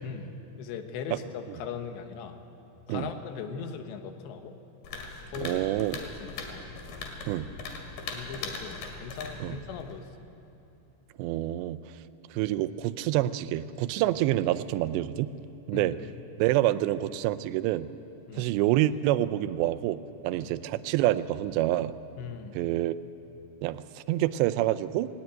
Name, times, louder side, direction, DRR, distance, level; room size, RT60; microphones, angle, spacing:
voice 1, 0.0-2.4 2.9-4.6 5.3-5.6 5.9-6.8 8.1-10.1 15.7-16.1 18.3-18.5 20.3-20.5 22.2-22.6, left 6 dB, 85° left, 7 dB, 3.5 m, -39 dB
sound 1, 4.8-10.0, left 4 dB, 65° left, 3.8 m, -40 dB
voice 2, 5.4-6.0 7.3-7.5 9.4-9.6 11.2-11.8 12.3-15.3 15.7-16.0 16.4-17.9 18.4-20.0 20.2-21.9 22.5-23.0 23.6-23.8 24.1-25.1, right 14 dB, 90° right, 14 dB, 2.9 m, -27 dB
19.0 x 18.5 x 9.0 m, 2.9 s
omnidirectional pair, 4.9 m